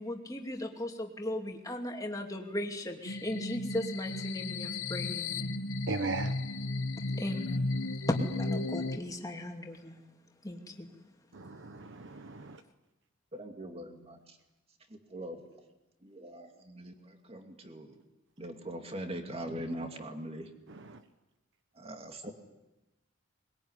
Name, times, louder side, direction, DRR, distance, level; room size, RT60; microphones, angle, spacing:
voice 1, 0.0-5.7 7.2-7.8 8.1-10.0 10.4-10.9, left 1 dB, 15° left, 2.6 m, -36 dB
sound 1, 3.1-9.0, left 2 dB, 75° left, 1.1 m, -34 dB
voice 2, 5.9-6.4 11.3-12.6 20.7-21.0, right 3 dB, 65° right, 1.1 m, -37 dB
voice 3, 13.3-14.4 14.9-15.4 16.0-18.0 18.4-20.5 21.7-22.3, right 1 dB, 30° right, 2.5 m, -42 dB
21.5 x 21.5 x 9.8 m
head